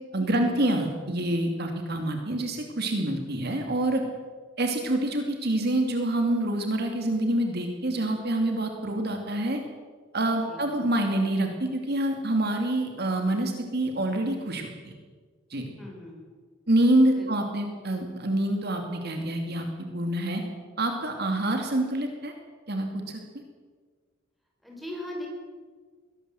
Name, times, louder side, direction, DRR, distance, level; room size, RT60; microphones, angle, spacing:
voice 1, 0.1-4.0 4.6-9.6 10.1-14.9 15.5-15.7 16.7-19.7 19.9-20.4 20.8-22.3 22.7-23.2, right 1 dB, 50° right, 4 dB, 2.6 m, -26 dB
voice 2, 15.8-16.2 17.1-17.3 24.6-25.3, left 1 dB, ahead, -1 dB, 6.0 m, -39 dB
22.5 x 18.5 x 7.9 m, 1.5 s
head